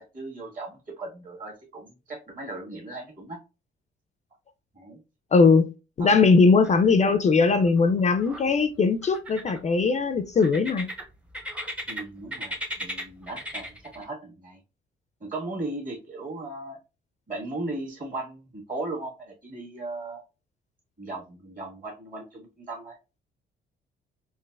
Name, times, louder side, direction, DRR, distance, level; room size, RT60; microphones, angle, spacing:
voice 1, 0.0-3.4 4.7-5.0 6.0-6.3 11.9-14.6 15.2-16.8 17.3-20.2 21.0-23.0, right 2 dB, 40° right, 1.6 m, -37 dB
voice 2, 5.3-5.7 6.0-10.9, left 4 dB, 35° left, 0.4 m, -20 dB
sound 1, 6.6-7.2 7.5-8.4 9.0-9.9 10.4-12.0 12.3-14.0, equal, 5° right, 0.6 m, -36 dB
3.9 x 2.5 x 2.3 m
cardioid pair, 90°, 20 cm